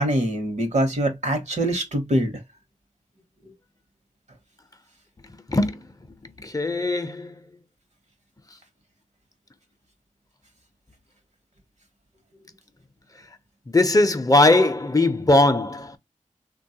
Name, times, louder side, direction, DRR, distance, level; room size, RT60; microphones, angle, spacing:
voice 1, 0.0-2.4, right 1 dB, 65° right, 0.9 m, -23 dB
voice 2, 5.3-7.4 13.7-16.0, left 2 dB, 30° left, 0.5 m, -20 dB
3.1 x 2.2 x 2.7 m
cardioid pair, 40°, 13 cm